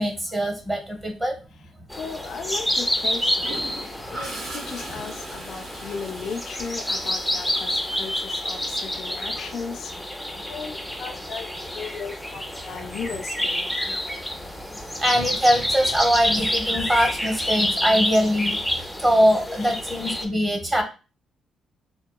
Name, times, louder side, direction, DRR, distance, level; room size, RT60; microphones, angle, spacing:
voice 1, 0.0-1.3 9.4-9.5 15.0-20.8, equal, 20° right, 3 dB, 0.9 m, -22 dB
sound 1, 1.9-20.3, left 1 dB, ahead, 0.5 m, -28 dB
voice 2, 2.0-10.1 10.5-13.7 19.6-19.7, left 5 dB, 65° left, 4 dB, 0.5 m, -36 dB
Gurgling / Toilet flush, 3.4-9.1 11.2-11.4, right 2 dB, 75° right, 1.6 m, -40 dB
3.6 x 2.2 x 2.3 m, 0.33 s
cardioid pair, 90°, 0 cm